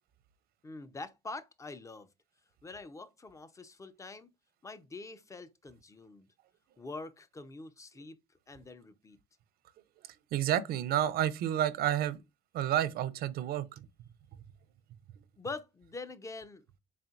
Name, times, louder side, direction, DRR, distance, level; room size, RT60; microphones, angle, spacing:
voice 1, 0.6-2.1 2.6-4.3 4.6-6.3 6.8-8.2 8.5-9.2 15.4-16.6, left 3 dB, 20° left, 0.5 m, -45 dB
voice 2, 10.3-12.2 12.5-13.9, right 11 dB, 65° right, 0.5 m, -30 dB
4.2 x 3.7 x 2.4 m
cardioid pair, 110°, 17 cm